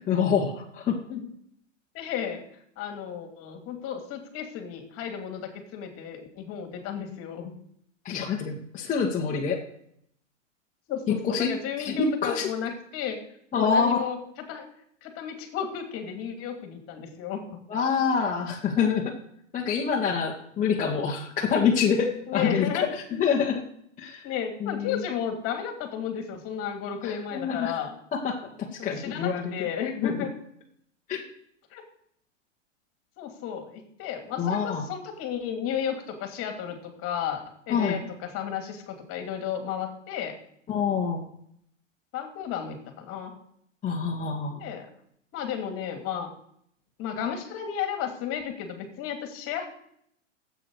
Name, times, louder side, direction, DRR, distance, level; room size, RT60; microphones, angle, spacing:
voice 1, 0.1-1.0 8.0-9.6 11.2-12.5 13.5-14.1 17.7-19.2 19.5-23.6 24.0-24.3 24.6-25.0 27.0-27.8 28.1-29.5 30.0-30.3 31.1-31.2 34.4-34.9 37.7-38.0 40.7-41.2 43.8-44.6, left 6 dB, 20° left, -3 dB, 1.8 m, -26 dB
voice 2, 1.9-2.4 2.8-7.5 10.9-13.2 13.5-14.2 14.5-14.7 15.0-17.6 22.3-22.9 24.2-27.9 28.8-30.3 31.7-31.8 33.2-40.3 42.1-43.3 44.6-44.9 45.3-46.3 47.0-49.6, left 8 dB, 35° left, 4 dB, 2.8 m, -33 dB
15.0 x 8.5 x 4.9 m, 0.70 s
hypercardioid pair, 125°, 39 cm